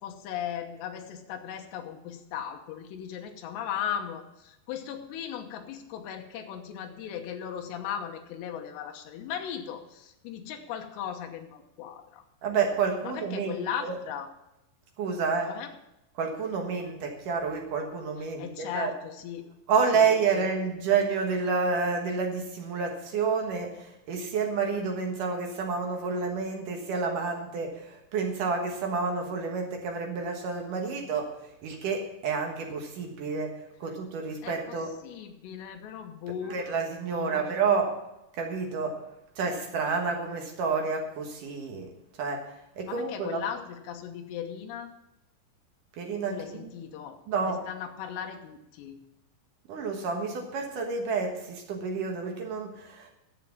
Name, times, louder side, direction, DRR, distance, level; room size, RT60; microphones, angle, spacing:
voice 1, 0.0-12.2 13.0-14.3 15.4-15.7 18.4-19.5 19.9-20.1 20.3-20.5 34.4-36.6 37.1-37.5 42.9-44.9 46.3-47.2 47.5-49.0, left 9 dB, 85° left, 3 dB, 3.3 m, -37 dB
voice 2, 12.4-14.0 15.0-15.5 16.2-18.9 19.7-31.3 31.6-34.9 36.5-38.0 38.3-39.0 39.4-41.9 42.2-42.5 42.8-43.4 46.0-46.7 47.3-47.7 49.7-53.1, right 5 dB, 60° right, 2 dB, 2.5 m, -29 dB
12.0 x 7.3 x 7.1 m, 0.89 s
omnidirectional pair, 4.9 m